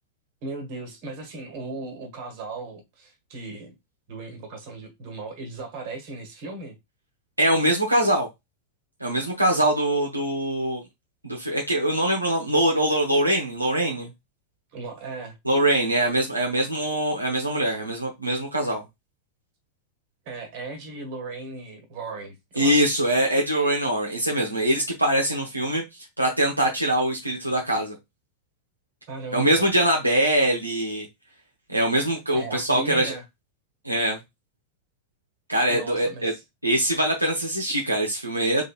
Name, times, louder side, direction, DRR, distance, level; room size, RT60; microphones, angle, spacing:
voice 1, 0.4-3.7 4.1-6.8 14.7-15.4 20.2-23.0 29.1-29.7 32.3-33.2 35.7-36.4, right 3 dB, 45° right, 1.5 m, -37 dB
voice 2, 7.4-8.3 9.0-10.8 11.2-14.1 15.4-18.8 22.6-25.8 26.2-28.0 29.3-31.1 31.7-33.1 33.8-34.2 35.5-36.3 36.6-38.6, right 1 dB, 85° right, 0.9 m, -23 dB
3.7 x 3.7 x 2.4 m
figure-of-eight pair, 90°, 0 cm